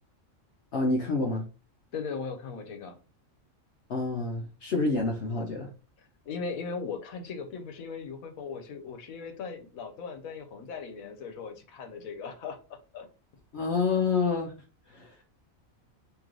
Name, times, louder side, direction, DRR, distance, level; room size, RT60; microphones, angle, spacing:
voice 1, 0.7-1.5 3.9-5.7 13.5-14.5 14.9-15.2, left 3 dB, 60° left, 0 dB, 0.9 m, -28 dB
voice 2, 1.9-3.0 6.0-13.1, left 5 dB, 80° left, 7 dB, 1.2 m, -38 dB
3.8 x 2.9 x 3.1 m, 0.35 s
omnidirectional pair, 1.4 m